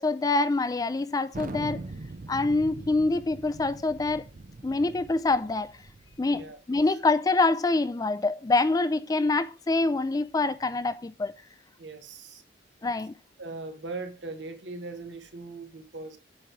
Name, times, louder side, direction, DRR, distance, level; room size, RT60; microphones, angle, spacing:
voice 1, 0.0-1.8 2.3-4.2 4.6-5.7 6.2-11.3 12.8-13.1, left 3 dB, 20° left, 0.3 m, -25 dB
Thunder, 1.3-6.5, right 2 dB, 45° right, 0.6 m, -41 dB
voice 2, 11.8-12.4 13.4-16.2, right 3 dB, 70° right, 1.3 m, -39 dB
8.7 x 3.1 x 5.9 m
head